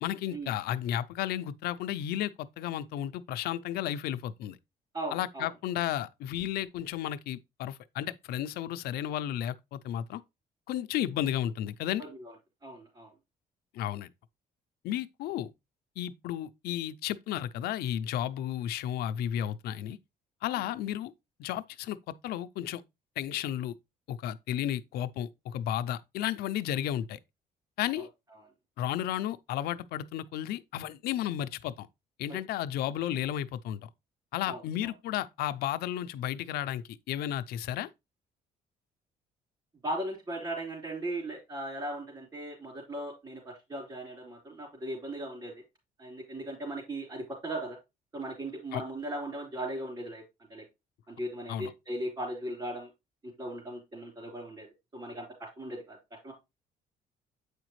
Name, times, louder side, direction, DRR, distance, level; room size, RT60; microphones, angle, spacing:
voice 1, 0.0-4.6 5.1-10.2 10.7-12.0 13.7-14.1 14.8-15.5 16.0-20.0 20.4-21.1 21.4-22.8 23.2-23.7 24.1-27.2 27.8-28.1 28.8-31.9 32.2-33.9 34.3-37.9 48.7-48.8 51.5-51.7, left 11 dB, 85° left, 0.5 m, -33 dB
voice 2, 4.9-5.5 12.6-13.1 34.5-34.9 39.8-45.5 46.0-47.8 48.1-50.2 50.5-50.6 51.1-52.9 53.4-54.7 54.9-56.0 56.2-56.3, right 1 dB, 30° right, 3.5 m, -38 dB
8.1 x 5.0 x 3.1 m
cardioid pair, 125°, 16 cm